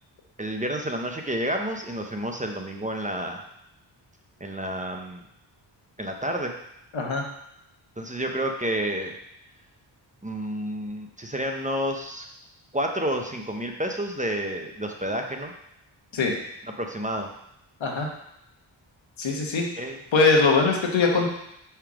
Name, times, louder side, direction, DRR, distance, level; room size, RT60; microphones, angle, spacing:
voice 1, 0.4-3.4 4.4-5.2 6.0-6.5 8.0-9.1 10.2-12.3 12.7-15.5 16.6-17.3 19.8-20.0, right 1 dB, 15° right, 3 dB, 0.7 m, -30 dB
voice 2, 6.9-7.2 16.1-16.3 17.8-18.1 19.2-19.6 20.1-21.3, left 4 dB, 75° left, 1 dB, 1.2 m, -21 dB
5.7 x 3.5 x 4.8 m, 0.80 s
cardioid pair, 60°, 47 cm